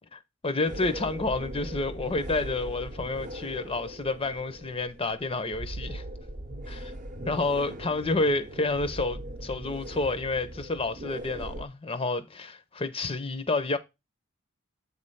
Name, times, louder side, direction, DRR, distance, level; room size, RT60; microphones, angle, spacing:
voice 1, 0.1-6.0 6.7-6.9 7.3-13.8, left 3 dB, 25° left, 0.6 m, -29 dB
sound 1, 0.7-11.6, right 1 dB, 40° right, 0.8 m, -40 dB
8.0 x 3.2 x 5.4 m
head